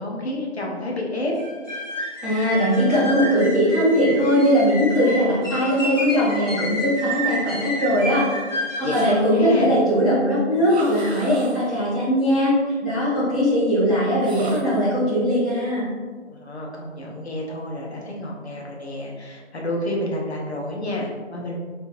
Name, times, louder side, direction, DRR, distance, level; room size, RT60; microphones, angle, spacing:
voice 1, 0.0-1.3 8.8-9.8 16.3-21.6, left 1 dB, 60° left, -2 dB, 0.8 m, -29 dB
sound 1, 1.4-9.2, equal, 80° left, 1.4 m, -30 dB
voice 2, 2.2-8.2 8.8-12.5 12.8-15.9, equal, 5° left, -20 dB, 0.8 m, -20 dB
sound 2, 8.9-9.7 10.6-11.9 14.2-14.9, right 3 dB, 60° right, 0.6 m, -40 dB
3.4 x 3.0 x 2.6 m, 1.5 s
figure-of-eight pair, 165°, 36 cm